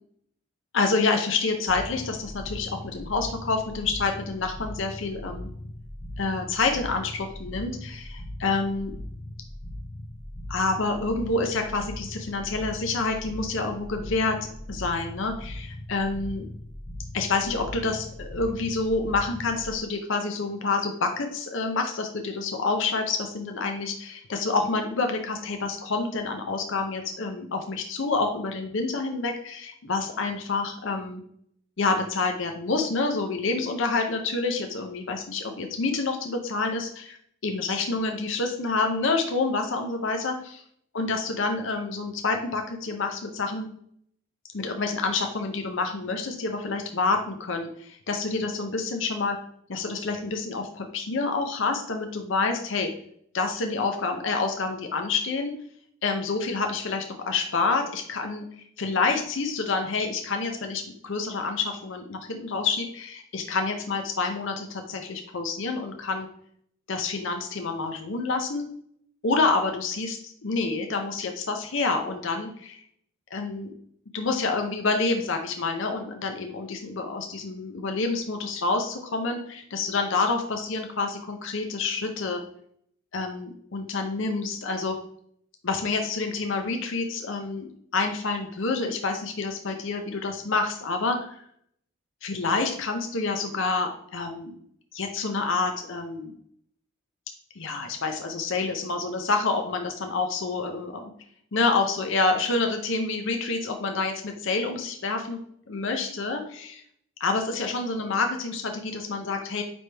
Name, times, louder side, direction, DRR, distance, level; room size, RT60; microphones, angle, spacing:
voice 1, 0.7-5.5 6.2-8.9 10.5-16.5 17.1-31.2 31.8-37.2 37.4-40.6 40.9-43.7 44.5-49.4 49.7-52.9 53.3-55.5 56.0-66.3 66.9-68.7 69.2-72.8 73.3-73.7 74.1-82.4 83.1-84.9 85.6-87.7 87.9-91.4 92.2-94.5 94.9-96.3 97.6-101.0 101.5-105.4 105.7-106.8 107.2-109.6, left 3 dB, 65° left, 4 dB, 0.7 m, -28 dB
sound 1, 1.7-19.8, left 1 dB, 30° left, 0.8 m, -39 dB
9.3 x 3.4 x 3.3 m, 0.67 s
head